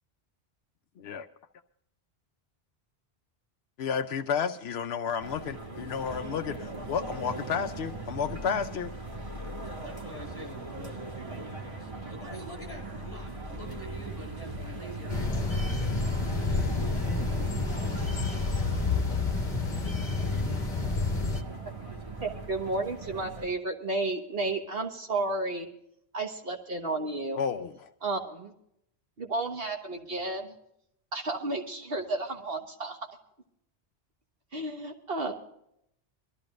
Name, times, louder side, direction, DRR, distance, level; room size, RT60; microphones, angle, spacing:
voice 1, 1.0-1.3 3.8-8.9 27.4-27.9, left 7 dB, 80° left, 8 dB, 0.9 m, -32 dB
sound 1, 5.2-23.5, right 3 dB, 30° right, 1.8 m, -40 dB
voice 2, 9.8-15.9 17.2-17.3, equal, 20° left, 0 dB, 6.6 m, -47 dB
sound 2, 15.1-21.4, left 3 dB, 50° left, 1.5 m, -29 dB
voice 3, 22.2-25.7 26.1-27.4 28.0-28.5 29.2-30.5 31.1-33.1 34.5-35.3, right 2 dB, 65° right, 3 dB, 1.6 m, -32 dB
23.0 x 13.5 x 2.5 m, 0.75 s
omnidirectional pair, 1.1 m